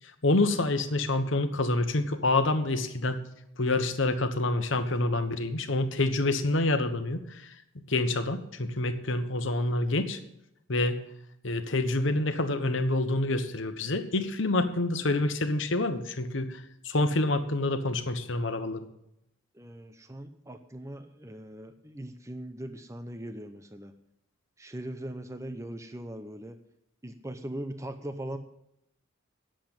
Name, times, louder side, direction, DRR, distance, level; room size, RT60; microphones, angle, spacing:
voice 1, 0.2-3.2 3.6-7.5 7.9-10.2 10.7-11.0 11.4-16.6 16.8-18.9, left 2 dB, 65° left, 9 dB, 1.1 m, -27 dB
voice 2, 19.5-23.9 24.6-26.6 27.0-28.4, right 1 dB, 15° right, 7 dB, 0.7 m, -40 dB
9.9 x 7.6 x 8.9 m, 0.80 s
head